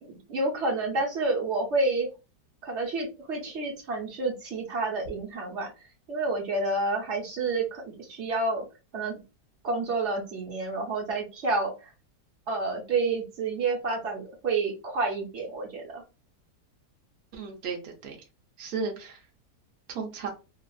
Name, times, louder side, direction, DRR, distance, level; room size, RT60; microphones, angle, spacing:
voice 1, 0.0-2.1 2.6-5.7 6.1-8.7 8.9-9.2 9.6-11.9 12.5-16.0, right 3 dB, 50° right, -1 dB, 1.0 m, -29 dB
voice 2, 17.3-18.2 18.6-19.2 19.9-20.3, right 5 dB, 70° right, 1 dB, 0.6 m, -34 dB
2.9 x 2.5 x 2.3 m, 0.29 s
omnidirectional pair, 1.9 m